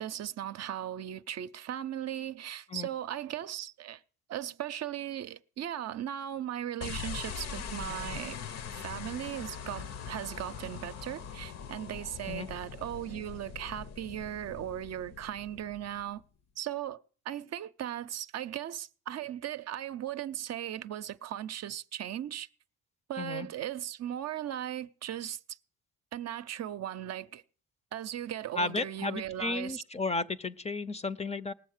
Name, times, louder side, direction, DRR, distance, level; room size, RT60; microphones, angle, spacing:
voice 1, 0.0-4.0 4.3-8.4 8.7-16.2 16.6-17.0 17.2-22.5 23.1-25.6 26.1-27.4 27.9-29.8, right 11 dB, 60° right, 0.6 m, -37 dB
sound 1, 6.8-16.2, left 6 dB, 60° left, 0.8 m, -42 dB
voice 2, 23.2-23.5 28.5-31.5, left 3 dB, 20° left, 0.5 m, -33 dB
18.5 x 7.1 x 6.5 m
cardioid pair, 90°, 30 cm